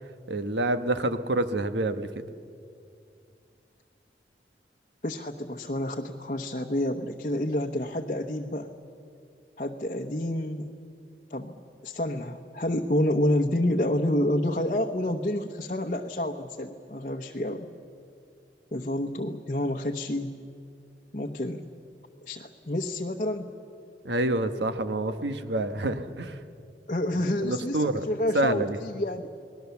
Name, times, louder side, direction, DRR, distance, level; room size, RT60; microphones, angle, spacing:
voice 1, 0.3-2.1 24.0-26.4 27.2-28.0 28.3-28.8, right 2 dB, 85° right, 10 dB, 1.2 m, -27 dB
voice 2, 5.0-8.7 9.6-10.7 11.3-11.5 11.8-17.7 18.7-20.4 21.1-21.6 22.2-23.5 26.9-29.3, left 1 dB, 45° left, 1 dB, 0.9 m, -29 dB
29.5 x 20.0 x 7.1 m, 2.4 s
head